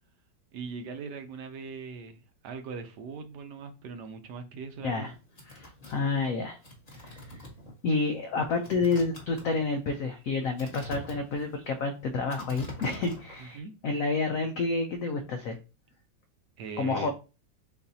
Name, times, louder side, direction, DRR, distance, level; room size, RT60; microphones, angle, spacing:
voice 1, 0.5-5.1 13.4-13.7 16.6-17.1, right 5 dB, 70° right, 1.1 m, -40 dB
sound 1, 5.1-13.5, left 1 dB, 25° left, 1.1 m, -45 dB
voice 2, 5.4-6.6 7.0-7.4 7.8-15.6 16.8-17.1, left 3 dB, 85° left, 0.7 m, -29 dB
6.7 x 2.5 x 2.7 m
omnidirectional pair, 2.1 m